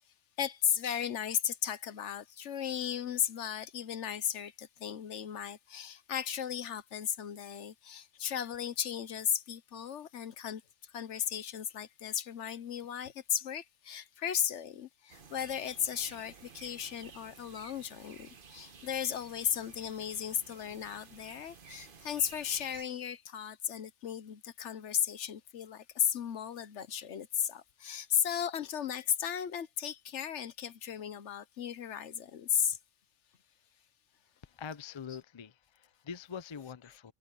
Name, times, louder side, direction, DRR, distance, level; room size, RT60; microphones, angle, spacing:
voice 1, 0.4-32.8, left 9 dB, 65° left, 1.1 m, -35 dB
sound 1, 15.1-22.8, right 5 dB, 45° right, 1.2 m, -54 dB
voice 2, 34.4-37.1, left 6 dB, 45° left, 0.3 m, -44 dB
omnidirectional pair, 1.4 m